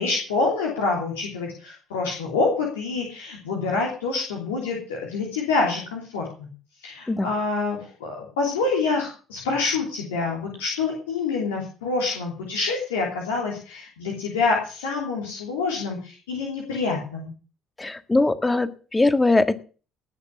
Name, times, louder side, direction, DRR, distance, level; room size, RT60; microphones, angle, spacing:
voice 1, 0.0-6.5 6.8-17.3, left 3 dB, 80° left, -1 dB, 3.2 m, -26 dB
voice 2, 17.8-19.5, left 2 dB, 20° left, 12 dB, 1.6 m, -21 dB
19.0 x 6.8 x 7.2 m, 0.39 s
hypercardioid pair, 55°, 0 cm